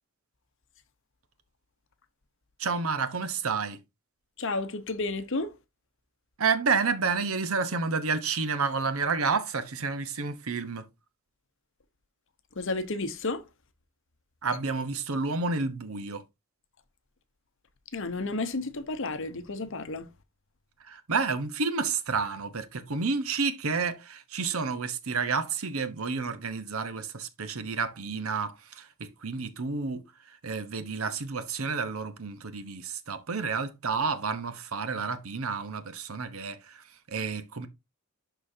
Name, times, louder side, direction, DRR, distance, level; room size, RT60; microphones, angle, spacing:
voice 1, 2.6-3.8 6.4-10.9 14.4-16.2 20.8-37.7, right 4 dB, 75° right, 0.9 m, -30 dB
voice 2, 4.4-5.5 12.6-13.4 17.9-20.1, left 3 dB, 60° left, 1.0 m, -32 dB
11.5 x 4.0 x 2.7 m
head